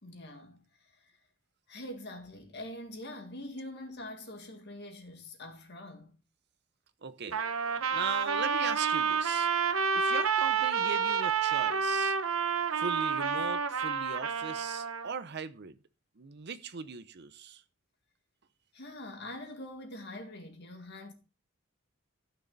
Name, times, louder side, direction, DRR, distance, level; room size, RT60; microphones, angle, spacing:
voice 1, 0.0-1.1 1.7-6.1 7.8-8.0 9.6-9.8 18.7-21.1, left 1 dB, 55° left, 2.1 m, -44 dB
voice 2, 7.0-7.5 7.9-9.5 9.9-12.2 12.8-15.8 16.2-17.6, right 6 dB, 50° right, 0.7 m, -39 dB
Trumpet, 7.3-15.1, right 6 dB, 80° right, 0.9 m, -29 dB
13.5 x 6.3 x 4.0 m
head